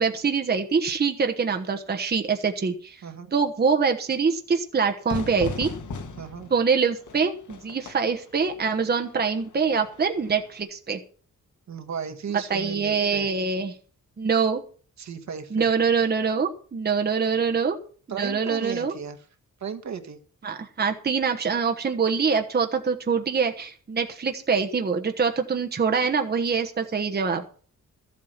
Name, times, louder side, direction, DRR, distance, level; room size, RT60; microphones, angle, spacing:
voice 1, 0.0-3.0 3.3-5.7 6.5-11.0 12.5-13.8 14.2-14.6 15.5-17.8 18.2-18.9 20.4-27.4, right 5 dB, 30° right, 4 dB, 1.2 m, -24 dB
Fire / Fireworks, 5.1-10.6, left 3 dB, 70° left, 1.9 m, -38 dB
voice 2, 6.2-6.5 11.7-13.2 15.0-15.7 18.1-19.2 19.6-20.2, right 7 dB, 60° right, 6 dB, 1.6 m, -35 dB
14.0 x 8.4 x 5.8 m, 0.42 s
wide cardioid pair, 175°, 31 cm